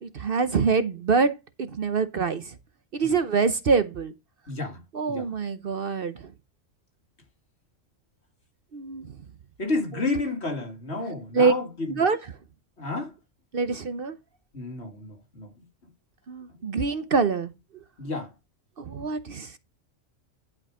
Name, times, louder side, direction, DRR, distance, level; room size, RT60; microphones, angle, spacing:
voice 1, 0.0-2.6 2.9-4.1 4.9-6.3 8.7-9.2 9.9-10.0 11.3-11.5 11.9-12.3 13.5-14.2 16.3-17.5 18.8-19.6, right 5 dB, 50° right, 0.9 m, -25 dB
voice 2, 4.5-4.8 5.1-5.3 9.6-11.7 12.8-13.1 14.5-15.5 18.0-18.3, left 3 dB, 55° left, 2.6 m, -30 dB
11.0 x 5.0 x 4.9 m
omnidirectional pair, 1.3 m